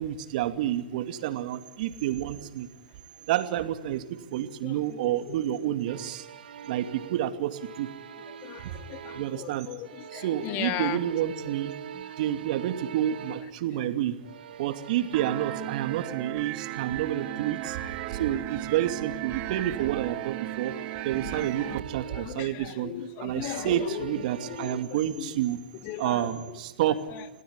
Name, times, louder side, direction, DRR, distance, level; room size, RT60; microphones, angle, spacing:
voice 1, 0.0-2.7 3.3-6.3 6.7-7.9 8.6-8.7 9.1-9.7 10.1-11.7 12.2-14.2 14.6-17.8 18.1-20.7 21.0-22.9 23.2-25.6 26.0-27.0, right 12 dB, 55° right, 9 dB, 2.7 m, -29 dB
voice 2, 4.6-5.5 8.1-11.0 11.9-12.1 13.7-13.8 15.6-15.7 16.1-16.2 17.8-17.9 19.5-19.9 21.1-21.8 22.1-25.4 25.7-26.6 26.8-27.3, left 11 dB, 40° left, 10 dB, 2.3 m, -39 dB
sound 1, 5.9-9.5 9.8-13.7 14.2-18.6 18.9-22.5 23.3-24.8, right 9 dB, 70° right, 1.4 m, -43 dB
sound 2, 15.1-21.8, right 20 dB, 35° right, 0.8 m, -36 dB
27.5 x 18.0 x 9.7 m, 1.0 s
hypercardioid pair, 120°, 5 cm